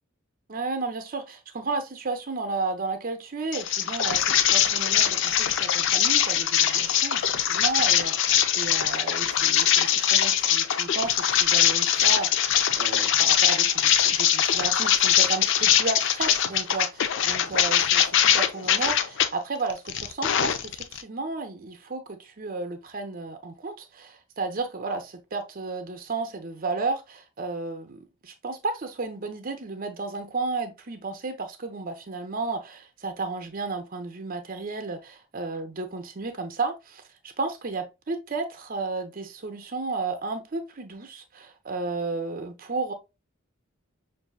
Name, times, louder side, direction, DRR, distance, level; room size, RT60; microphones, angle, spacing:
voice 1, 0.5-42.9, right 3 dB, 40° right, 0.6 m, -33 dB
sound 1, 3.5-19.3 19.7-21.0, left 10 dB, 60° left, 0.4 m, -22 dB
5.9 x 2.6 x 2.3 m
head